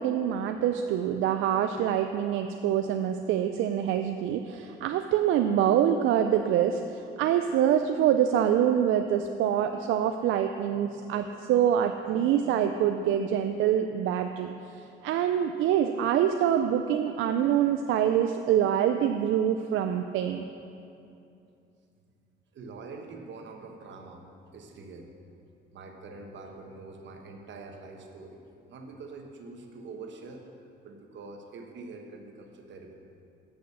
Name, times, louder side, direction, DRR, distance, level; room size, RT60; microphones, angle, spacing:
voice 1, 0.0-20.4, right 9 dB, 85° right, 6 dB, 0.4 m, -25 dB
voice 2, 22.5-24.2 24.5-25.1 25.7-28.4 28.7-30.4 30.8-32.9, right 3 dB, 65° right, 3 dB, 1.3 m, -44 dB
8.5 x 6.3 x 6.9 m, 2.6 s
cardioid pair, 90°, 20 cm